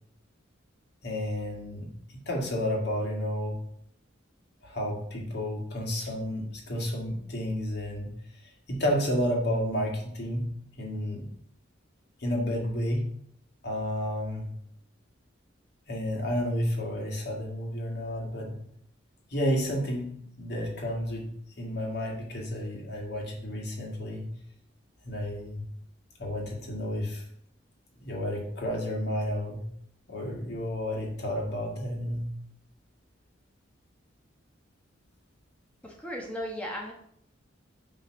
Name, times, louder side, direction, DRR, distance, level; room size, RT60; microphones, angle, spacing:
voice 1, 1.0-3.6 4.6-8.1 8.7-11.3 12.2-13.1 13.6-14.5 15.9-18.5 19.3-20.1 20.4-21.3 21.6-24.3 25.0-25.6 26.2-27.2 28.0-29.6 30.1-32.3, equal, 60° left, -1 dB, 2.2 m, -31 dB
voice 2, 35.8-36.9, equal, 5° left, -2 dB, 1.2 m, -36 dB
8.2 x 3.8 x 6.3 m, 0.67 s
head